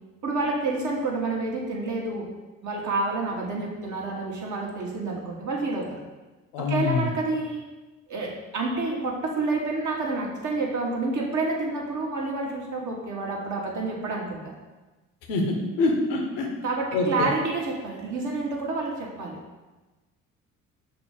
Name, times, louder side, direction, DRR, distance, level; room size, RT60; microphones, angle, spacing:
voice 1, 0.2-2.3 2.6-6.0 6.6-7.6 8.1-14.5 16.6-19.4, right 3 dB, 45° right, -1 dB, 1.6 m, -29 dB
voice 2, 6.5-7.1 15.3-16.5 16.9-17.3, left 3 dB, 70° left, 1 dB, 1.2 m, -25 dB
6.0 x 3.1 x 5.3 m, 1.2 s
figure-of-eight pair, 50°, 41 cm